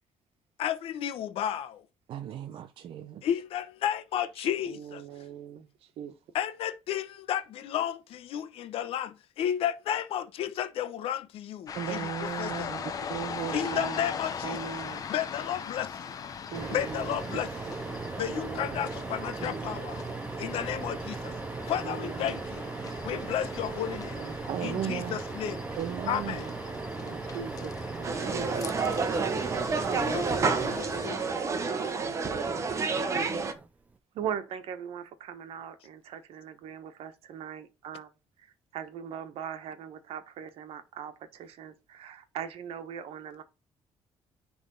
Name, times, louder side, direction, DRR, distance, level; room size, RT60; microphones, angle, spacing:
voice 1, 0.6-1.8 3.2-5.0 6.3-12.7 13.5-14.6 15.1-16.1 16.7-17.5 18.2-20.0 20.4-21.3 21.7-22.7 23.0-24.2 24.6-25.6 26.1-26.5 29.8-31.2, left 10 dB, 75° left, 0.9 m, -33 dB
voice 2, 2.1-3.2 4.4-4.5 11.8-12.8 13.1-13.6 24.5-25.1 25.8-26.3, right 10 dB, 60° right, 0.6 m, -35 dB
voice 3, 4.6-6.1 13.5-15.0 16.5-17.5 18.3-18.8 19.4-19.8 21.8-22.4 23.1-23.3 23.8-24.9 26.3-26.5 27.0-28.7 34.1-38.1 38.4-43.4, right 8 dB, 80° right, 1.2 m, -40 dB
sound 1, 11.7-31.3, left 6 dB, 35° left, 0.9 m, -41 dB
sound 2, 16.5-31.8 33.5-33.7 34.0-34.1, right 3 dB, 15° right, 0.5 m, -38 dB
sound 3, 28.0-33.5, right 4 dB, 30° right, 1.0 m, -29 dB
10.0 x 3.6 x 3.9 m
cardioid pair, 155°, 10 cm